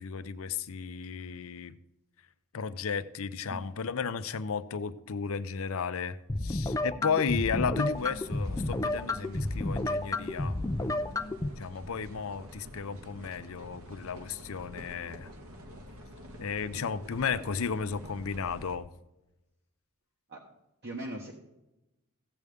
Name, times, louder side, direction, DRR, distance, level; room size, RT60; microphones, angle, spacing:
voice 1, 0.0-1.7 2.5-10.6 11.6-15.3 16.4-18.9, left 6 dB, 65° left, 0.6 m, -34 dB
sound 1, 6.3-11.5, left 2 dB, 15° left, 0.4 m, -31 dB
sound 2, 7.8-18.8, equal, 75° right, 1.4 m, -48 dB
voice 2, 20.8-21.3, right 1 dB, 50° right, 1.3 m, -40 dB
15.5 x 7.9 x 3.6 m
head